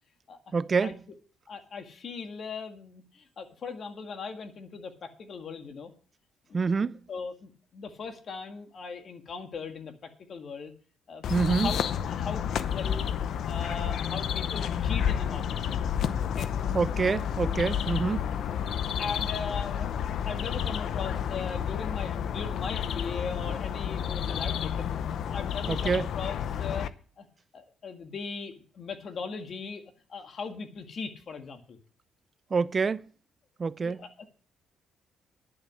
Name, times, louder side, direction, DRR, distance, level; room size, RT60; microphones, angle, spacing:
voice 1, 0.5-1.0 6.5-7.0 11.3-11.7 16.7-18.3 25.7-26.1 32.5-33.0 33.6-34.1, right 5 dB, 35° right, 0.5 m, -27 dB
voice 2, 1.5-5.9 6.5-6.6 7.1-10.7 11.1-11.8 12.0-13.1 13.5-15.8 16.2-16.5 19.0-19.9 20.2-24.9 25.3-26.9 27.2-27.3 27.5-29.8 30.1-31.8 33.8-34.3, left 5 dB, 55° left, 1.9 m, -39 dB
sound 1, 11.2-26.9, left 8 dB, 70° left, 0.7 m, -30 dB
11.0 x 7.8 x 6.2 m
cardioid pair, 90°, 0 cm